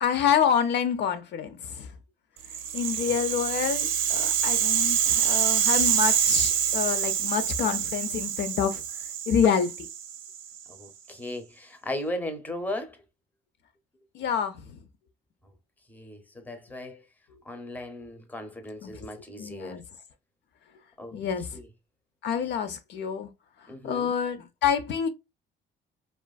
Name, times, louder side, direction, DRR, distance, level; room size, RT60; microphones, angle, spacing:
voice 1, 0.0-1.9 2.7-8.8 9.3-9.9 14.1-14.8 18.8-19.1 19.4-19.8 21.1-21.6 22.2-23.3 23.8-25.1, left 7 dB, 60° left, 0.4 m, -27 dB
Rattle (instrument), 2.4-10.6, right 9 dB, 85° right, 0.5 m, -26 dB
voice 2, 10.7-13.0 15.9-17.1 17.4-19.8 21.0-21.2 21.5-21.7 23.7-24.1, left 1 dB, 10° left, 0.6 m, -37 dB
2.4 x 2.4 x 2.2 m
cardioid pair, 85°, 20 cm